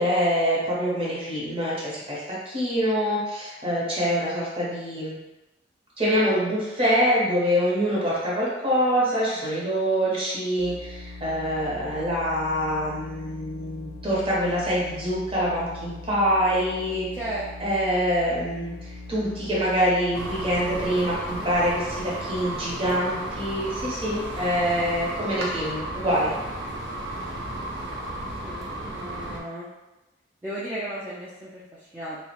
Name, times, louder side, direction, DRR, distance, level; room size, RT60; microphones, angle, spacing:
voice 1, 0.0-5.2 6.0-17.1 17.6-26.3, equal, 30° right, -7 dB, 0.7 m, -25 dB
sound 1, 10.6-20.8, left 3 dB, 65° left, 0.4 m, -41 dB
voice 2, 17.1-17.8 28.4-29.7 30.4-32.2, right 1 dB, 10° right, -10 dB, 0.3 m, -35 dB
sound 2, 20.1-29.4, right 1 dB, 75° right, 0.5 m, -33 dB
2.3 x 2.0 x 2.8 m, 1.0 s
head